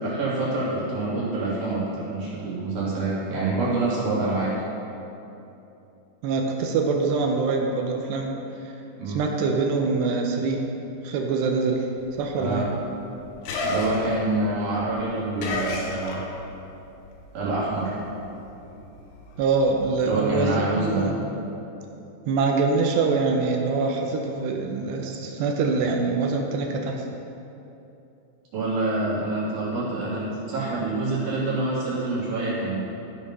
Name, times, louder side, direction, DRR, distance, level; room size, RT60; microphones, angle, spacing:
voice 1, 0.0-4.5 9.0-9.2 12.3-12.7 13.6-16.2 17.3-17.9 20.0-21.0 28.5-32.8, right 2 dB, 60° right, -9 dB, 4.6 m, -26 dB
voice 2, 6.2-8.3 8.7-8.8 9.1-10.7 11.0-11.9 12.2-12.7 19.4-21.2 22.3-27.1, right 4 dB, 80° right, 2 dB, 2.8 m, -24 dB
sound 1, 12.0-16.7 17.0-20.3, left 2 dB, 70° left, 2.7 m, -33 dB
15.5 x 5.4 x 5.4 m, 2.9 s
omnidirectional pair, 5.1 m